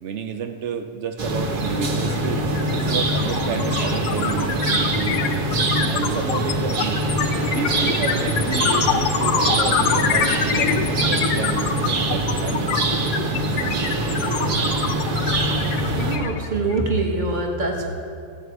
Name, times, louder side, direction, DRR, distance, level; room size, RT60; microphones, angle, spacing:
voice 1, 0.0-5.4 5.9-7.1 7.5-11.7 12.0-12.7 16.0-16.2, right 6 dB, 85° right, 6 dB, 0.6 m, -30 dB
sound 1, 1.2-16.2, right 2 dB, 60° right, 1.8 m, -23 dB
sound 2, 2.1-2.3 2.6-16.9, left 7 dB, 70° left, 1.2 m, -25 dB
voice 2, 15.8-17.9, right 2 dB, 30° right, 1 dB, 1.3 m, -24 dB
15.5 x 8.4 x 4.7 m, 2.5 s
omnidirectional pair, 2.0 m